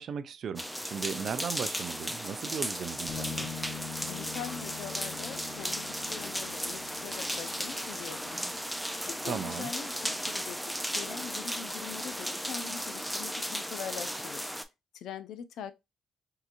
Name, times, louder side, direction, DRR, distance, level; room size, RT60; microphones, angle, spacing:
voice 1, 0.0-3.5 9.3-9.7, right 7 dB, 60° right, 0.4 m, -37 dB
sound 1, 0.6-14.6, equal, ahead, 0.4 m, -36 dB
sound 2, 3.1-12.6, left 6 dB, 45° left, 0.8 m, -46 dB
voice 2, 4.0-8.4 8.9-14.5 14.9-15.7, left 8 dB, 80° left, 0.4 m, -43 dB
3.7 x 2.8 x 2.5 m
cardioid pair, 90°, 0 cm